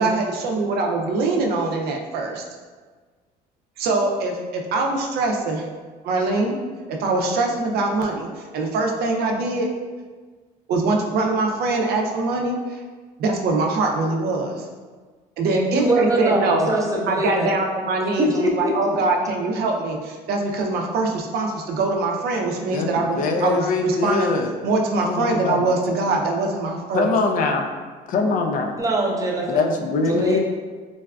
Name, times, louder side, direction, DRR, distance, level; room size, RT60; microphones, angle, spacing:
voice 1, 0.0-2.4 3.8-5.6 6.0-6.6 6.9-9.7 10.7-12.8 13.2-14.7 15.4-16.7 17.1-24.3 24.6-27.1, right 3 dB, 70° right, 1 dB, 0.5 m, -23 dB
voice 2, 15.5-17.5 18.2-18.8 28.8-29.6 30.0-30.4, right 1 dB, 20° right, -1 dB, 0.5 m, -22 dB
voice 3, 23.2-24.5 25.0-25.7 26.9-27.7 28.1-28.8 29.5-30.4, left 3 dB, 55° left, 3 dB, 0.4 m, -22 dB
3.9 x 2.3 x 2.2 m, 1.4 s
cardioid pair, 110°, 17 cm